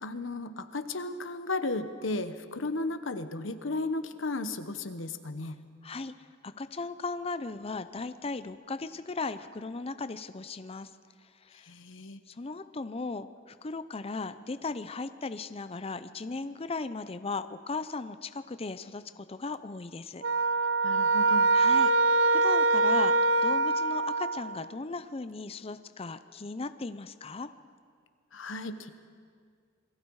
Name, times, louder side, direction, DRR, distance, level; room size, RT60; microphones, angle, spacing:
voice 1, 0.0-5.6 11.6-12.2 20.8-21.5 28.3-28.9, left 2 dB, 85° left, 10 dB, 1.2 m, -34 dB
voice 2, 5.8-6.1 6.4-10.9 11.4-11.7 12.3-20.2 21.5-27.5, left 3 dB, 30° left, 11 dB, 0.6 m, -37 dB
sound 1, 20.2-24.6, right 3 dB, 75° right, 0.6 m, -24 dB
28.0 x 22.5 x 4.8 m, 2.1 s
head